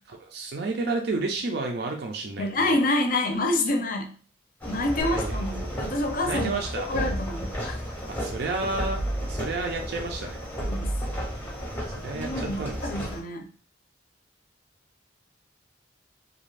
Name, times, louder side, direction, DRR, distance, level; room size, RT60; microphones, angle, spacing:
voice 1, 0.2-2.8 5.0-5.8 6.3-6.9 8.1-9.0 9.3-10.4 12.0-12.8, right 3 dB, 55° right, 2 dB, 0.4 m, -31 dB
voice 2, 2.4-4.1 4.6-6.5 6.8-7.8 10.6-10.9 12.1-13.4, left 2 dB, 45° left, 4 dB, 0.5 m, -27 dB
sound 1, 4.6-13.2, equal, 10° left, 0.6 m, -34 dB
sound 2, 5.0-6.0 6.9-7.8 8.8-9.8 10.6-11.7, right 1 dB, 90° left, 0.7 m, -33 dB
2.5 x 2.3 x 3.2 m, 0.41 s
head